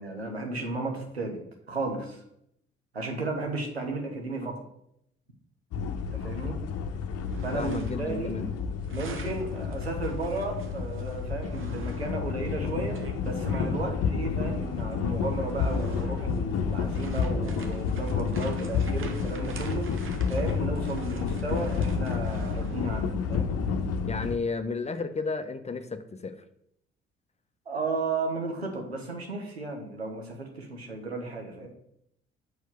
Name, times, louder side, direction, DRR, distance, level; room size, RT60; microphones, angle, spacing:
voice 1, 0.0-1.4 1.7-2.2 2.9-4.5 6.1-6.6 7.4-8.4 8.9-23.5 27.7-31.7, right 3 dB, 90° right, 3 dB, 1.1 m, -34 dB
sound 1, 5.7-24.4, left 6 dB, 50° left, 0.9 m, -30 dB
sound 2, 7.1-8.2 8.4-13.8 14.7-14.8 15.3-23.1, right 4 dB, 40° right, 1.2 m, -46 dB
voice 2, 7.5-8.5 24.1-26.4, left 4 dB, 20° left, 9 dB, 0.8 m, -33 dB
6.5 x 4.7 x 6.6 m, 0.74 s
figure-of-eight pair, 45°, 30 cm